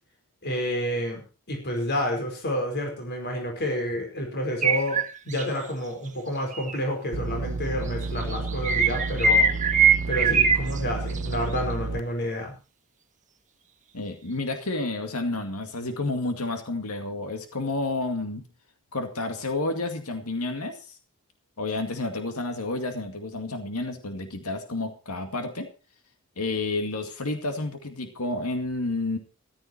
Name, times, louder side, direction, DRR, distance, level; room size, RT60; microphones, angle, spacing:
voice 1, 0.4-1.2 1.5-9.5 10.1-12.5, equal, 50° left, 3 dB, 4.9 m, -29 dB
sound 1, 4.6-5.4 6.5-6.8 8.0-10.8 11.1-11.3, right 4 dB, 35° right, 1.4 m, -22 dB
sound 2, 7.1-12.0, right 3 dB, 60° right, 0.8 m, -31 dB
voice 2, 13.9-18.5 18.9-21.0 21.6-25.7 26.4-29.2, left 2 dB, 80° left, 6 dB, 2.3 m, -30 dB
14.5 x 13.0 x 4.5 m, 0.33 s
head